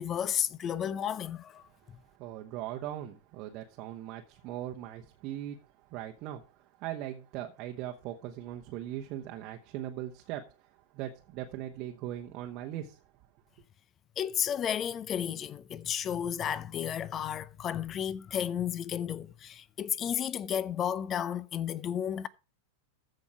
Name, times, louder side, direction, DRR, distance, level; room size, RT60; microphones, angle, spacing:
voice 1, 0.0-2.0 14.2-22.3, left 9 dB, 30° left, 0.6 m, -33 dB
voice 2, 2.2-5.6 5.9-13.0, right 12 dB, 40° right, 1.1 m, -40 dB
14.5 x 5.3 x 4.9 m
figure-of-eight pair, 90°, 0 cm